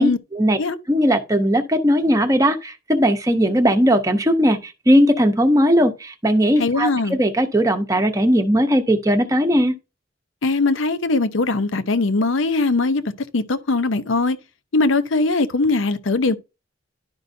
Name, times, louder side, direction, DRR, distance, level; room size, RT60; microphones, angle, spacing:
voice 1, 0.0-0.6 0.9-9.7, equal, 15° right, 0.8 m, -18 dB
voice 2, 6.6-7.2 10.4-13.0 13.3-14.4 14.7-16.3, left 3 dB, 85° left, 0.7 m, -20 dB
11.5 x 5.3 x 2.6 m
head